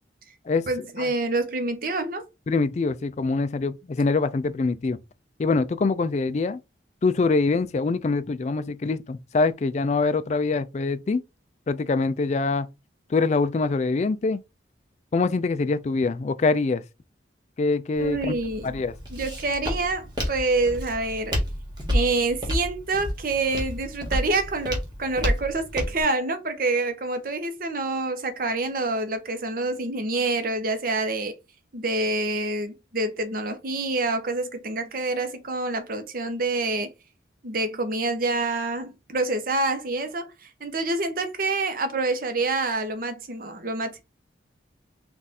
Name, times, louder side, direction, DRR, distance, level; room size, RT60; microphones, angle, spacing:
voice 1, 0.7-2.2 18.0-18.7 19.1-21.4 21.9-31.4 31.7-36.9 37.4-40.3 40.6-44.0, right 2 dB, 50° right, 0.7 m, -27 dB
voice 2, 2.5-5.0 5.4-6.6 7.0-11.2 11.7-12.7 13.1-14.4 15.1-16.8 17.6-18.9, left 3 dB, 35° left, 0.3 m, -24 dB
Walk footsteps, 18.0-26.0, equal, 25° right, 1.3 m, -30 dB
3.5 x 2.4 x 4.1 m
head